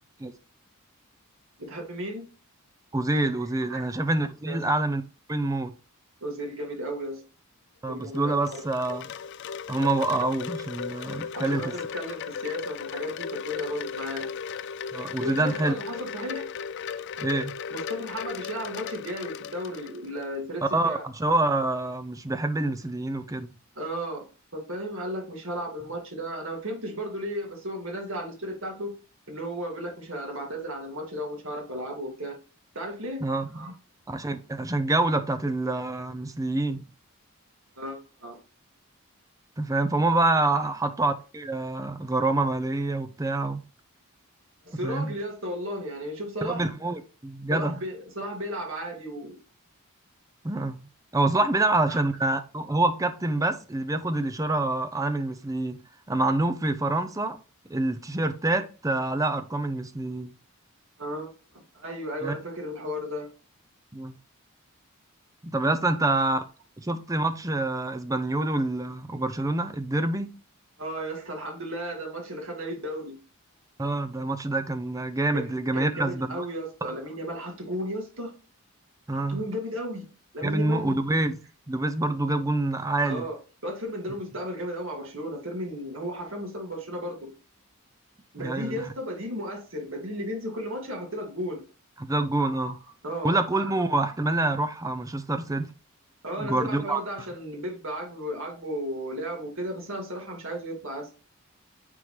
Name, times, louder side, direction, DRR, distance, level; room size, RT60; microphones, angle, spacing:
voice 1, 1.6-2.3 3.7-3.8 4.5-4.6 6.2-7.2 7.9-8.7 11.3-14.3 15.2-16.5 17.7-21.1 23.8-24.3 24.5-29.0 29.3-32.3 32.7-33.7 37.8-38.4 40.5-40.6 44.6-46.7 47.5-49.4 51.5-51.6 51.9-52.0 61.0-61.3 61.7-63.3 70.8-73.2 75.3-78.3 79.1-80.1 80.3-81.1 83.0-87.3 88.3-91.6 92.4-92.8 93.0-93.7 96.2-101.1, equal, 60° right, 2.1 m, -34 dB
voice 2, 2.9-5.0 5.3-5.7 7.8-9.1 9.7-11.6 14.9-15.7 17.2-17.5 20.7-23.5 33.2-33.5 34.1-36.8 39.6-43.6 44.8-45.1 46.4-47.7 50.4-50.8 51.1-55.8 56.1-57.4 57.7-60.3 62.2-62.4 63.9-64.1 65.4-66.4 66.8-70.3 73.8-76.4 79.1-79.4 80.4-81.4 81.7-83.3 88.4-88.9 92.0-92.8 93.2-95.7 96.4-97.0, right 2 dB, 15° right, 0.6 m, -26 dB
Wind chime, 8.0-20.3, left 6 dB, 55° left, 0.3 m, -36 dB
9.2 x 3.7 x 3.2 m
head